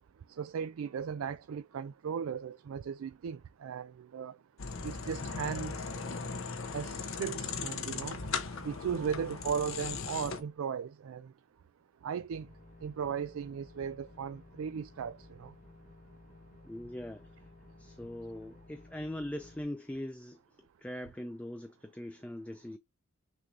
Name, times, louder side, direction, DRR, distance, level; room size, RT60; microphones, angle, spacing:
voice 1, 0.4-4.4 4.8-5.9 6.7-8.2 8.6-11.3 12.0-12.5 12.8-15.5, right 7 dB, 75° right, 0.3 m, -37 dB
sound 1, 4.6-10.4, left 5 dB, 70° left, 0.8 m, -38 dB
Screaming, 7.9-10.6, right 6 dB, 90° right, 0.9 m, -55 dB
sound 2, 12.3-19.6, left 2 dB, 35° left, 1.3 m, -56 dB
voice 2, 16.6-17.5 17.8-22.8, left 1 dB, 5° left, 0.4 m, -41 dB
6.1 x 2.6 x 3.2 m
head